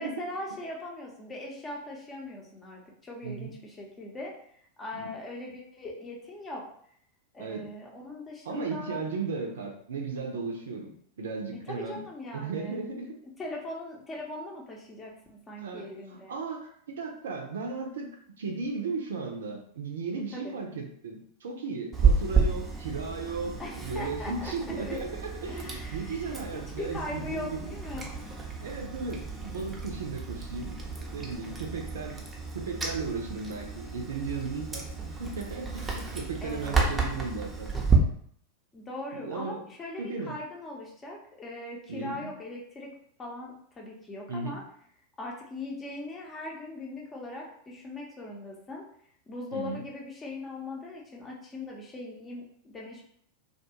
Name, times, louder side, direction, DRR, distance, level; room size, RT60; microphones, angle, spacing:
voice 1, 0.0-4.3 4.8-6.6 7.3-9.0 11.7-12.8 13.4-16.3 20.3-20.5 23.6-25.0 25.5-26.3 26.7-28.2 36.4-36.8 38.7-42.9 43.2-44.6 45.2-48.8 49.3-53.0, left 2 dB, 20° left, -2 dB, 0.7 m, -40 dB
voice 2, 8.4-10.9 11.2-12.0 12.3-13.1 15.6-18.1 18.4-27.7 28.6-30.8 31.1-32.2 32.5-34.9 35.2-37.7 39.1-39.7 40.0-40.3 41.9-42.3 44.3-44.6 49.5-49.8, right 4 dB, 70° right, 1 dB, 0.5 m, -35 dB
Chewing mastication, 21.9-38.0, right 5 dB, 15° right, 0.6 m, -31 dB
2.3 x 2.3 x 2.8 m, 0.63 s
figure-of-eight pair, 90°, 0 cm